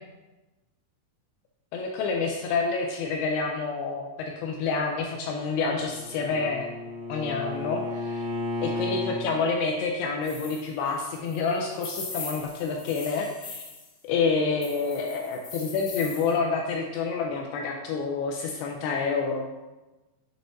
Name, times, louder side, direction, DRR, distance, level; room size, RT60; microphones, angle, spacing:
voice 1, 1.7-6.7 7.1-8.3 8.6-13.6 14.0-19.5, left 4 dB, 85° left, 1 dB, 2.2 m, -28 dB
Bowed string instrument, 5.5-9.3, left 2 dB, 80° right, 2.1 m, -33 dB
sound 1, 10.2-13.9 14.6-16.3, left 4 dB, 70° left, 2.1 m, -40 dB
7.4 x 3.4 x 3.9 m, 1.1 s
omnidirectional pair, 5.1 m